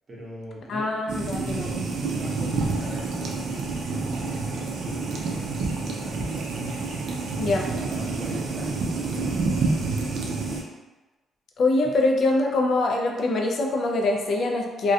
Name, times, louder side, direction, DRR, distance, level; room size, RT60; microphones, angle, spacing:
voice 1, 0.1-6.6 7.8-9.9, right 1 dB, 30° right, -5 dB, 0.7 m, -41 dB
voice 2, 0.7-1.8 7.4-7.7 11.6-14.9, left 2 dB, 55° left, 1 dB, 0.3 m, -24 dB
sound 1, 1.1-10.6, right 3 dB, 70° right, 0.4 m, -28 dB
2.4 x 2.1 x 2.6 m, 1.2 s
cardioid pair, 125°, 0 cm